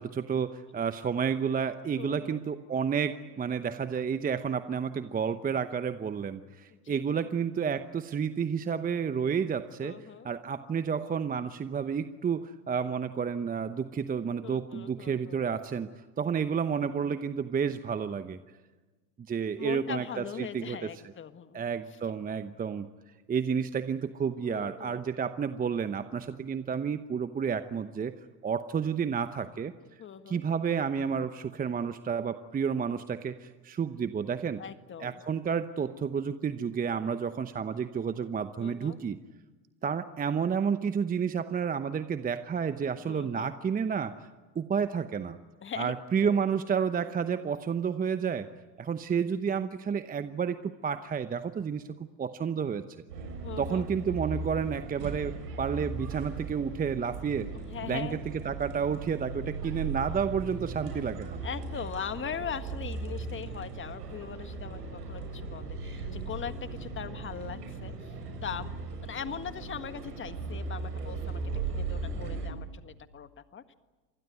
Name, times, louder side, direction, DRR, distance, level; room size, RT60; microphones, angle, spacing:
voice 1, 0.0-10.0 10.2-15.9 16.2-18.4 19.3-20.9 21.5-22.9 23.3-28.2 28.4-29.7 30.3-34.6 35.0-39.2 39.8-44.3 44.5-45.4 45.8-48.5 48.8-52.8 53.6-57.5 57.8-61.4, right 6 dB, 20° right, 11 dB, 0.9 m, -31 dB
voice 2, 1.9-2.4 6.7-7.3 9.8-10.3 14.4-15.4 19.6-21.6 24.4-25.0 30.0-30.4 34.6-35.2 38.6-39.0 43.1-43.5 45.6-46.4 53.4-53.8 57.5-58.2 61.4-68.2 68.4-68.7 69.0-71.4 71.7-73.7, left 8 dB, 25° left, 10 dB, 1.6 m, -40 dB
sound 1, 53.1-72.5, right 4 dB, 80° right, 7.2 m, -38 dB
27.0 x 20.0 x 9.3 m, 1.3 s
hypercardioid pair, 95°, 47 cm